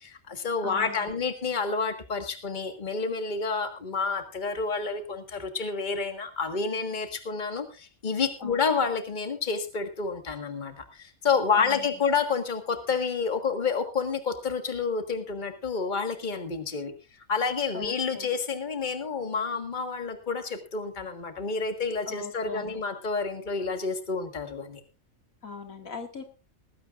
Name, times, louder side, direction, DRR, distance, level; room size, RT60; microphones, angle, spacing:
voice 1, 0.0-16.9 17.3-24.8, left 5 dB, 35° left, 6 dB, 1.8 m, -29 dB
voice 2, 0.6-1.1 8.4-8.9 11.6-11.9 17.7-18.3 22.1-22.8 25.4-26.2, left 5 dB, 80° left, 5 dB, 2.5 m, -40 dB
19.0 x 16.0 x 2.5 m, 0.32 s
omnidirectional pair, 1.4 m